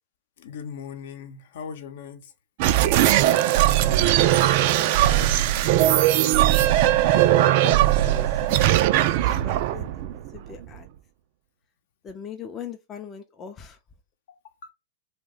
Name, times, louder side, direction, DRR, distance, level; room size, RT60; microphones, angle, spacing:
voice 1, 0.4-2.3 14.3-14.7, left 7 dB, 60° left, 0.7 m, -39 dB
sound 1, 2.6-10.8, right 13 dB, 50° right, 0.3 m, -19 dB
voice 2, 3.4-4.3 4.7-5.8 6.2-10.9 12.0-13.8, left 7 dB, 25° left, 0.5 m, -42 dB
2.7 x 2.1 x 3.9 m
hypercardioid pair, 115°, 0 cm